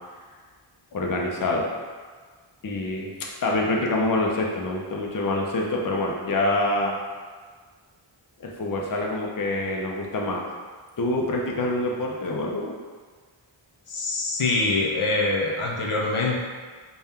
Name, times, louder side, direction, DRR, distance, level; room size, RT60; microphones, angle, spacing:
voice 1, 0.9-1.7 2.6-3.1 3.4-7.0 8.4-10.4 11.0-12.8, left 2 dB, 45° left, -1 dB, 0.6 m, -26 dB
voice 2, 13.9-16.4, left 2 dB, 80° left, -3 dB, 0.7 m, -24 dB
4.1 x 2.3 x 3.6 m, 1.5 s
wide cardioid pair, 45°, 50 cm